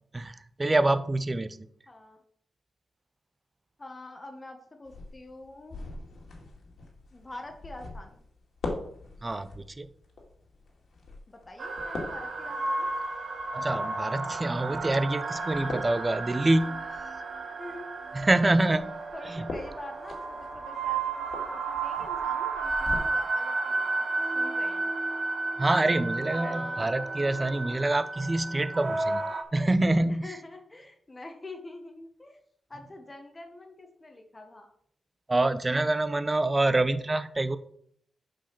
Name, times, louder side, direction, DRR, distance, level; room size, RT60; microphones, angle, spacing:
voice 1, 0.1-1.6 9.2-9.9 13.5-16.8 18.1-19.0 19.3-19.5 25.6-29.2 29.5-30.3 35.3-37.6, right 2 dB, 25° right, 13 dB, 0.6 m, -26 dB
voice 2, 1.9-2.2 3.8-5.8 7.1-8.2 11.3-12.9 17.6-18.1 19.1-24.0 24.3-24.9 26.3-26.9 30.1-32.4 32.7-34.7, left 2 dB, 25° left, 4 dB, 1.2 m, -45 dB
sound 1, 4.8-23.0, left 3 dB, 70° left, 2.2 m, -43 dB
sound 2, 11.6-29.4, right 3 dB, 55° right, 1.2 m, -32 dB
7.5 x 4.6 x 5.9 m, 0.66 s
cardioid pair, 80°, 0 cm